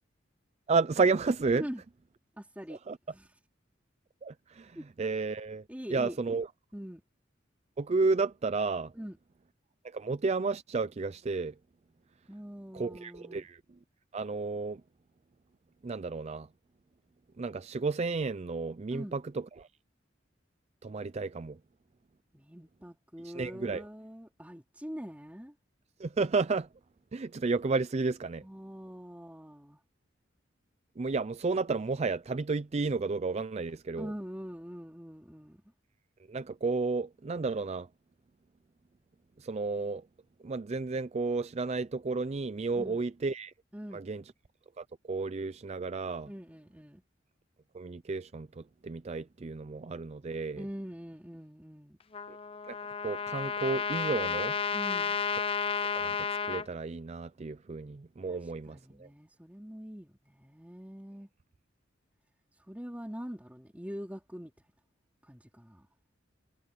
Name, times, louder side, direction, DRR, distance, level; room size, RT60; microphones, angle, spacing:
voice 1, 0.7-1.6 2.7-3.0 4.2-5.6 5.9-6.5 7.8-8.9 9.8-11.5 12.7-13.6 14.1-14.8 15.8-16.5 17.4-19.7 20.8-21.6 23.2-23.8 26.0-26.7 27.1-28.4 31.0-34.1 36.3-37.9 39.4-40.0 40.4-43.5 43.9-44.2 44.8-46.3 47.7-50.6 52.3-52.4 52.7-52.8 53.0-54.6 56.0-56.2 56.5-59.1, right 4 dB, 35° right, 0.4 m, -32 dB
voice 2, 2.4-2.8 3.1-3.3 4.7-4.8 5.7-6.2 6.7-7.0 8.9-9.2 12.3-13.5 18.9-19.2 22.3-25.5 28.4-29.8 34.0-35.6 42.7-43.0 43.7-44.0 46.2-47.0 50.6-52.0 54.7-55.2 58.3-58.4 58.7-61.3 62.7-64.5 65.3-65.9, equal, 10° right, 2.9 m, -43 dB
Trumpet, 52.1-56.7, left 6 dB, 30° left, 0.6 m, -32 dB
head